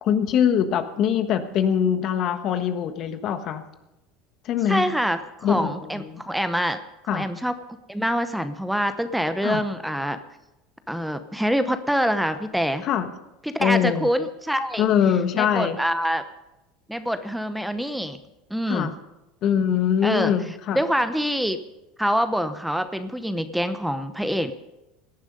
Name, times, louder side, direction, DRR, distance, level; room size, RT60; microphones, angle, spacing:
voice 1, 0.0-3.6 4.4-4.8 5.4-6.2 7.1-7.3 9.4-9.6 12.8-13.1 13.6-14.1 14.8-15.8 18.7-18.9 19.4-20.8, left 8 dB, 50° left, 9 dB, 1.4 m, -23 dB
voice 2, 4.7-6.8 7.1-7.5 7.9-10.2 10.9-12.8 13.4-14.8 15.3-16.2 16.9-18.2 18.5-18.9 20.0-20.3 20.7-21.6 22.0-24.5, equal, ahead, 10 dB, 0.8 m, -25 dB
17.5 x 10.5 x 5.4 m, 0.95 s
hypercardioid pair, 90°, 0 cm